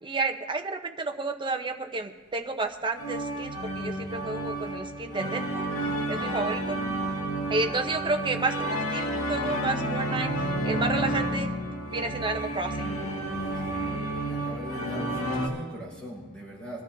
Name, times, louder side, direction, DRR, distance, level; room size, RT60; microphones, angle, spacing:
voice 1, 0.0-5.7 6.1-6.8 7.5-10.3 10.6-11.6 11.9-12.9, right 3 dB, 20° right, 4 dB, 0.8 m, -31 dB
sound 1, 3.0-15.5, right 1 dB, 70° left, 1.9 m, -30 dB
voice 2, 14.2-16.8, equal, 5° left, -5 dB, 4.8 m, -40 dB
22.0 x 12.5 x 2.7 m, 1.2 s
head